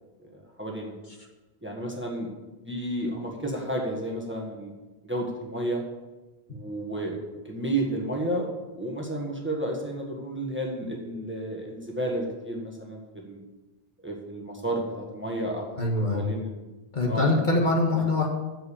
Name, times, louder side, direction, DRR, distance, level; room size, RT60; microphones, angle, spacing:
voice 1, 0.2-0.9 1.6-2.3 2.6-4.7 5.0-5.8 6.5-7.2 7.4-8.5 8.7-13.4 14.0-15.7 16.1-16.6 17.1-17.4 17.9-18.1, right 1 dB, 10° right, 0 dB, 1.6 m, -31 dB
voice 2, 15.8-16.2 16.9-18.3, left 2 dB, 50° left, -1 dB, 1.8 m, -23 dB
7.8 x 7.7 x 7.2 m, 1.1 s
omnidirectional pair, 1.0 m